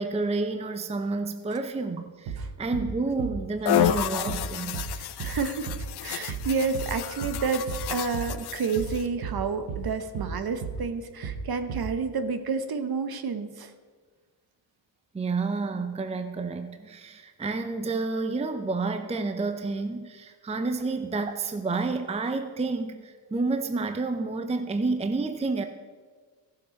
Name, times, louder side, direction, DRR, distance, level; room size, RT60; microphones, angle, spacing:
voice 1, 0.0-4.8 15.1-25.6, right 3 dB, 15° right, 8 dB, 0.7 m, -29 dB
sound 1, 2.3-2.5 2.7-2.9 3.2-3.4 3.8-4.0 4.3-4.5 4.7-4.9 5.2-5.4 5.7-5.9 6.3-6.5 6.7-6.9 7.2-7.4 7.7-7.9 8.1-8.3 8.8-9.0 9.2-9.4 9.7-9.9 10.1-10.3 10.6-10.8 11.2-11.4 11.7-11.9, right 5 dB, 75° right, 1.4 m, -34 dB
voice 2, 2.4-2.8 5.0-5.7 6.0-13.7, right 5 dB, 50° right, 9 dB, 1.1 m, -30 dB
sound 2, 3.7-9.1, left 12 dB, 55° left, 0.6 m, -30 dB
14.5 x 7.2 x 5.2 m, 1.5 s
cardioid pair, 85°, 49 cm